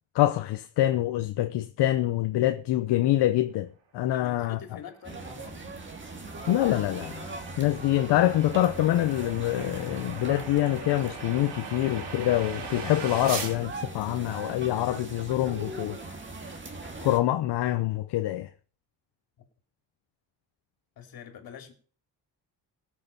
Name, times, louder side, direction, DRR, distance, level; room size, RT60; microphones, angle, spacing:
voice 1, 0.1-3.7 3.9-4.6 6.5-16.0 17.0-18.5, left 14 dB, 80° left, 0.9 m, -25 dB
voice 2, 4.0-5.6 21.0-21.7, left 8 dB, 60° left, 2.9 m, -45 dB
sound 1, 4.9-13.6, right 5 dB, 85° right, 3.4 m, -41 dB
sound 2, 5.0-17.2, right 3 dB, 30° right, 2.6 m, -40 dB
18.0 x 6.8 x 5.4 m
cardioid pair, 110°, 40 cm